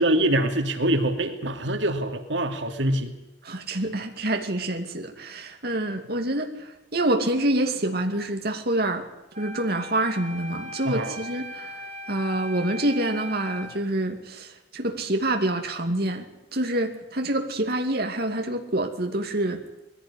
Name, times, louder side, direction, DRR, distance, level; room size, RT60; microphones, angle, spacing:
voice 1, 0.0-3.1 10.8-11.2, right 1 dB, 85° right, 7 dB, 2.7 m, -24 dB
voice 2, 3.4-9.0 9.4-11.7 12.1-16.3 16.5-19.6, right 1 dB, 55° right, 4 dB, 2.6 m, -27 dB
Wind instrument woodwind instrument, 9.3-13.8, right 1 dB, 40° right, 7.5 m, -39 dB
21.5 x 16.5 x 9.9 m, 0.94 s
head